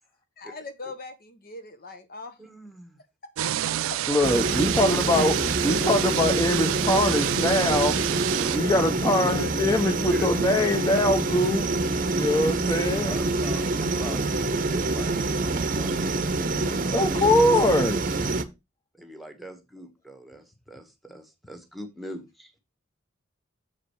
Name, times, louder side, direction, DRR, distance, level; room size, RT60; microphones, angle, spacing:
voice 1, 0.4-2.4 3.4-4.0, left 3 dB, 45° left, 1.0 m, -41 dB
voice 2, 2.4-3.0 4.9-5.3 9.2-9.5 10.1-10.3 13.0-17.0 18.9-22.5, equal, ahead, 1.3 m, -42 dB
sound 1, 3.4-8.6, right 14 dB, 85° right, 0.4 m, -29 dB
voice 3, 4.1-5.3 5.6-8.0 8.5-11.6 12.2-13.1 16.9-18.2, left 1 dB, 20° left, 0.9 m, -23 dB
sound 2, 4.2-18.4, right 2 dB, 40° right, 0.8 m, -26 dB
7.3 x 5.0 x 4.7 m
head